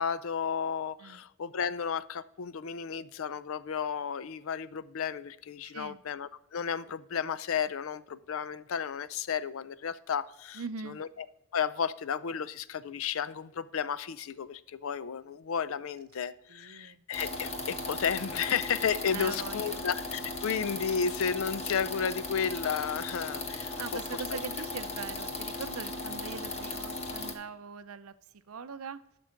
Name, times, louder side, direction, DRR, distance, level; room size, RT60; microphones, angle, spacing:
voice 1, 0.0-11.3 11.5-24.0, left 7 dB, 70° left, 0.4 m, -33 dB
voice 2, 5.6-6.0 10.5-11.0 16.5-17.0 19.1-19.8 23.8-29.0, right 5 dB, 80° right, 0.6 m, -42 dB
sound 1, 17.1-27.3, left 3 dB, 30° left, 1.1 m, -37 dB
11.5 x 6.1 x 3.7 m
head